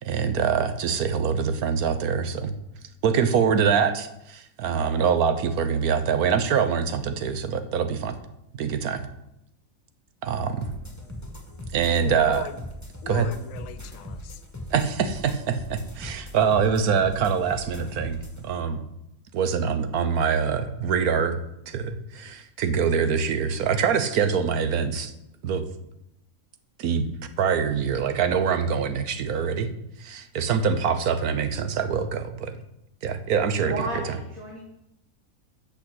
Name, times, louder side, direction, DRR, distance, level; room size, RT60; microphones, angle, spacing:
voice 1, 0.0-2.5 3.0-8.2 8.6-9.0 10.2-10.7 11.7-12.4 13.1-13.3 14.7-18.8 19.3-21.4 21.7-25.1 25.4-25.6 26.8-27.1 27.4-29.7 30.0-32.6 33.0-33.7, right 6 dB, 85° right, 9 dB, 1.4 m, -24 dB
sound 1, 10.6-18.4, left 1 dB, 10° left, 1.5 m, -39 dB
voice 2, 12.0-12.6 13.0-14.4, left 11 dB, 70° left, 13 dB, 1.1 m, -38 dB
voice 3, 33.6-34.6, right 2 dB, 70° right, -1 dB, 2.0 m, -32 dB
8.7 x 6.3 x 7.8 m, 0.83 s
omnidirectional pair, 1.5 m